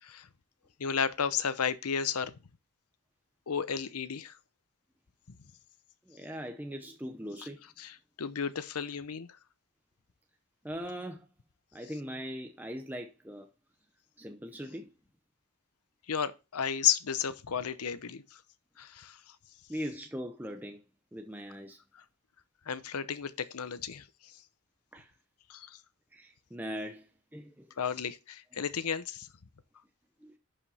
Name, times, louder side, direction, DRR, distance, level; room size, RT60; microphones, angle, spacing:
voice 1, 0.8-2.4 3.5-4.4 5.3-5.4 7.8-9.4 16.1-18.4 18.8-19.4 21.9-22.0 22.7-24.4 25.5-25.8 27.8-29.3, left 7 dB, 90° left, 0.7 m, -33 dB
voice 2, 6.1-7.6 10.6-11.3 11.7-13.5 14.2-14.9 19.7-20.8 21.1-21.8 24.9-25.1 26.1-27.7 30.2-30.4, equal, 10° right, 0.7 m, -40 dB
11.0 x 5.1 x 4.1 m
head